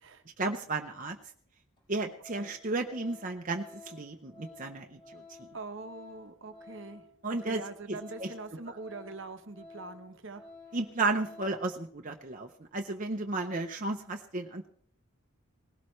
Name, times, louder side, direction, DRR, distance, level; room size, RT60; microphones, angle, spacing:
voice 1, 0.4-1.2 1.9-5.2 7.2-7.6 8.2-8.3 10.7-14.7, right 3 dB, 35° right, 3 dB, 0.8 m, -33 dB
Organ, 1.8-1.9 2.2-11.8 12.1-12.3, left 3 dB, 20° left, 4.5 m, -53 dB
voice 2, 5.5-10.4, right 3 dB, 55° right, 8 dB, 1.0 m, -43 dB
19.5 x 17.0 x 3.2 m, 0.62 s
head